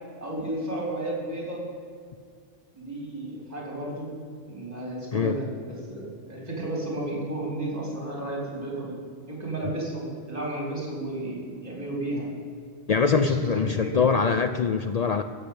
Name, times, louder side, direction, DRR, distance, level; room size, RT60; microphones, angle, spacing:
voice 1, 0.2-1.6 2.7-4.1 4.5-8.9 9.3-12.3 13.0-13.9, right 1 dB, 30° right, -3 dB, 4.0 m, -33 dB
voice 2, 12.9-15.2, left 5 dB, 85° left, 9 dB, 0.3 m, -23 dB
14.0 x 6.7 x 8.6 m, 2.2 s
omnidirectional pair, 1.3 m